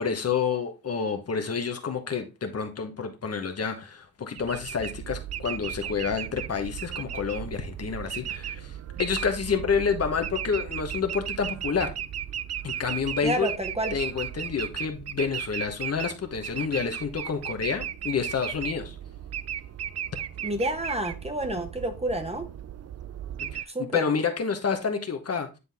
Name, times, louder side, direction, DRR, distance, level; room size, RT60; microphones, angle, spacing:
voice 1, 0.0-11.9 12.6-13.5 13.9-19.0 20.1-20.2 23.5-23.6 23.9-25.5, left 6 dB, 45° left, 1.1 m, -29 dB
sound 1, 4.4-23.6, right 10 dB, 45° right, 0.4 m, -36 dB
voice 2, 13.2-13.9 20.4-22.5 23.7-24.0, right 1 dB, 15° right, 1.3 m, -29 dB
9.5 x 3.9 x 3.5 m
cardioid pair, 95°, 35 cm